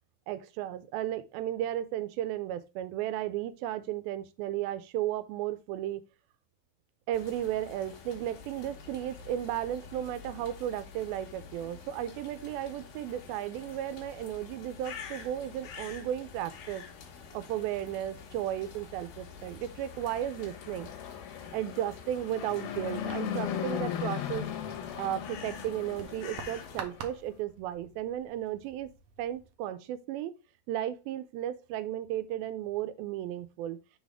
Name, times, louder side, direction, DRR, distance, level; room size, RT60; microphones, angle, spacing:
voice 1, 0.3-6.0 7.1-16.8 17.3-20.9 21.5-24.5 25.0-28.9 29.2-30.3 30.7-33.8, right 12 dB, 90° right, 2.4 m, -34 dB
sound 1, 7.1-26.8, left 6 dB, 70° left, 2.9 m, -48 dB
Fixed-wing aircraft airplane, 19.8-27.2, left 9 dB, 85° left, 2.8 m, -38 dB
sound 2, 23.0-29.5, right 7 dB, 75° right, 1.6 m, -49 dB
6.2 x 4.1 x 4.8 m
omnidirectional pair, 4.2 m